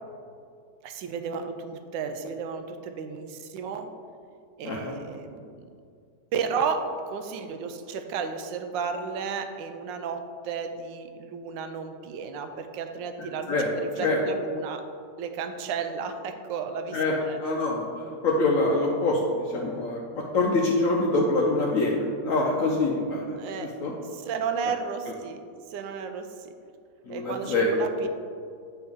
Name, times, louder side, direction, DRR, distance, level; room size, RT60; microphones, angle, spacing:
voice 1, 0.8-3.9 4.6-5.4 6.3-14.8 15.2-17.4 23.4-23.7 24.1-25.4 25.7-26.5 27.1-28.1, right 5 dB, 85° right, 7 dB, 1.3 m, -33 dB
voice 2, 4.6-5.0 13.5-13.7 14.0-14.2 16.9-17.1 17.4-23.9 27.1-27.9, left 2 dB, 70° left, -1 dB, 0.8 m, -25 dB
7.9 x 4.3 x 3.5 m, 2.4 s
omnidirectional pair, 2.0 m